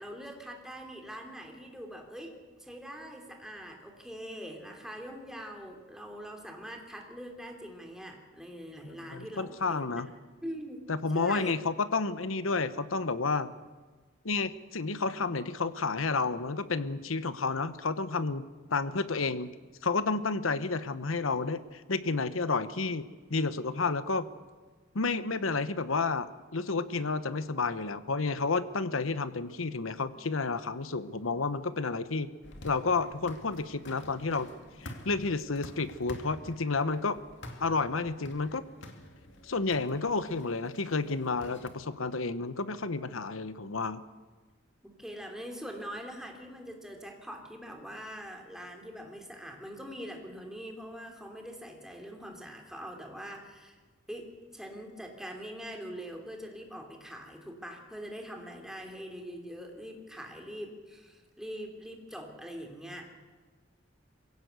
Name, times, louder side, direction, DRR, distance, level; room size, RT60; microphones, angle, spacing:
voice 1, 0.0-10.0 10.4-10.9 11.1-11.5 44.8-53.8 54.1-63.1, equal, 5° right, 2 dB, 3.1 m, -43 dB
voice 2, 8.8-10.1 10.9-13.5 14.2-19.5 19.8-24.3 24.9-26.3 26.5-32.3 32.6-34.5 34.8-37.2 37.6-38.6 39.4-44.0, left 4 dB, 90° left, 13 dB, 1.1 m, -31 dB
sound 1, 32.4-41.7, left 1 dB, 65° left, 2.6 m, -48 dB
23.0 x 16.5 x 8.2 m, 1.3 s
head